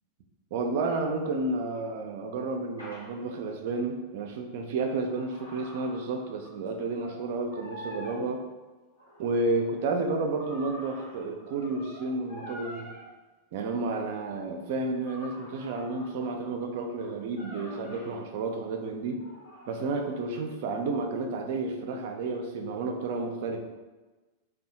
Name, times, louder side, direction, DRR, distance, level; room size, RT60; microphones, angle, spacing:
voice 1, 0.5-8.4 9.2-12.9 13.5-19.2 19.7-23.6, right 3 dB, 50° right, 4 dB, 0.3 m, -31 dB
sound 1, 2.8-3.0 4.6-6.7 7.0-7.2 7.5-8.2 8.9-13.0 13.8-14.0 15.0-18.1 19.2-20.1, equal, 85° left, 1.1 m, -46 dB
2.6 x 2.2 x 2.6 m, 1.2 s
figure-of-eight pair, 90°, 0 cm